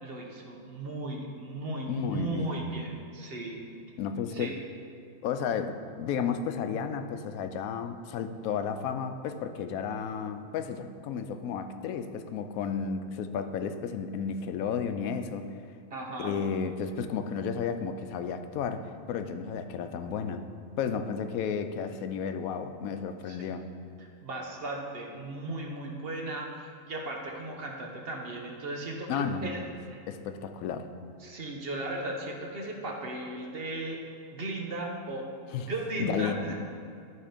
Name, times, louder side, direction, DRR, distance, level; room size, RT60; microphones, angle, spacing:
voice 1, 0.0-3.6 4.3-4.5 15.9-16.3 23.3-23.4 24.2-29.6 29.9-30.0 31.2-34.0 34.3-36.5, right 2 dB, 50° right, 0 dB, 1.0 m, -36 dB
voice 2, 1.9-2.7 4.0-4.5 5.2-15.5 16.2-20.5 20.8-23.6 29.1-29.7 30.1-30.9 35.5-35.7 36.0-36.5, left 6 dB, 90° left, 9 dB, 1.0 m, -33 dB
11.5 x 4.2 x 5.1 m, 2.4 s
omnidirectional pair, 1.4 m